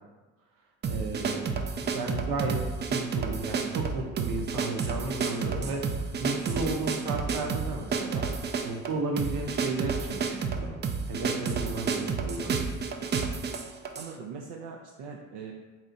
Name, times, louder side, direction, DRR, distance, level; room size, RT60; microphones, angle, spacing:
sound 1, 0.8-14.1, right 5 dB, 30° right, 0.4 m, -30 dB
voice 1, 0.8-2.6 2.9-8.3 8.6-10.8 11.1-12.6, right 3 dB, 60° right, 1 dB, 0.9 m, -34 dB
voice 2, 14.0-15.5, right 6 dB, 80° right, 0 dB, 0.5 m, -41 dB
4.2 x 2.4 x 3.9 m, 1.3 s
supercardioid pair, 75°, 37 cm